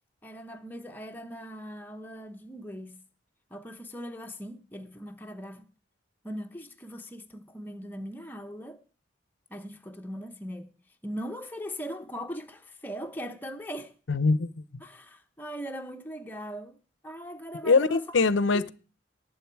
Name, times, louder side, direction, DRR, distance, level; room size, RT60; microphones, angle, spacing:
voice 1, 0.2-3.0 3.5-5.6 6.2-8.8 9.5-10.7 11.0-13.9 14.8-16.8 17.0-18.2 18.5-18.6, equal, 10° left, 1.0 m, -40 dB
voice 2, 14.1-14.8 17.6-18.7, left 4 dB, 75° left, 0.7 m, -23 dB
18.5 x 7.8 x 4.6 m
head